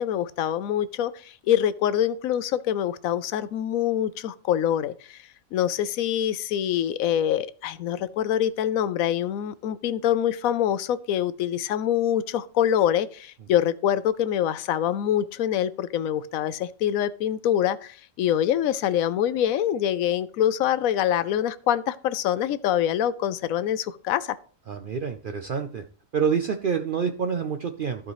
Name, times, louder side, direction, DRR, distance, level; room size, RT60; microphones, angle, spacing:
voice 1, 0.0-5.2 5.5-24.3, left 10 dB, 85° left, 15 dB, 1.0 m, -25 dB
voice 2, 24.7-25.8 26.1-28.1, right 6 dB, 55° right, 6 dB, 0.6 m, -27 dB
14.5 x 4.9 x 3.1 m, 0.43 s
omnidirectional pair, 1.4 m